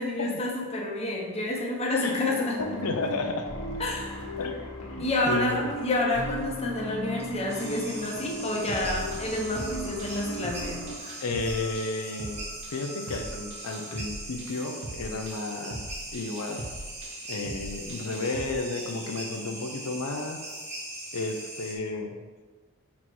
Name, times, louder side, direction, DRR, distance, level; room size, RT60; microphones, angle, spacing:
voice 1, 0.0-2.6 3.8-4.3 5.0-11.2, left 2 dB, 30° left, -2 dB, 1.1 m, -29 dB
voice 2, 1.9-3.5 4.4-4.5 5.0-5.7 11.2-12.4 12.7-15.8 16.1-16.6 17.3-20.4 21.1-22.2, left 3 dB, 90° left, 4 dB, 0.6 m, -32 dB
sound 1, 2.6-11.0, equal, 70° left, 1.3 m, -37 dB
sound 2, 7.5-21.7, right 1 dB, 30° right, 1.4 m, -40 dB
sound 3, 8.7-18.5, right 1 dB, 55° right, 0.7 m, -42 dB
6.0 x 4.2 x 4.6 m, 1.4 s
head